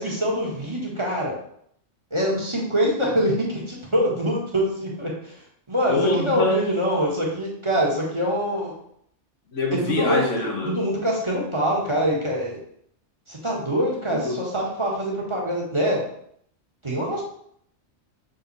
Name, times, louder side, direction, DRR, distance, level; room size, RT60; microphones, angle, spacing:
voice 1, 0.0-1.3 2.1-5.3 5.7-8.7 9.7-10.2 10.6-12.6 13.3-16.0 16.8-17.2, equal, 25° right, -4 dB, 1.5 m, -24 dB
voice 2, 5.9-6.7 9.5-10.8 14.1-14.4, left 2 dB, 85° left, 1 dB, 1.5 m, -24 dB
6.6 x 3.8 x 4.1 m, 0.68 s
omnidirectional pair, 1.2 m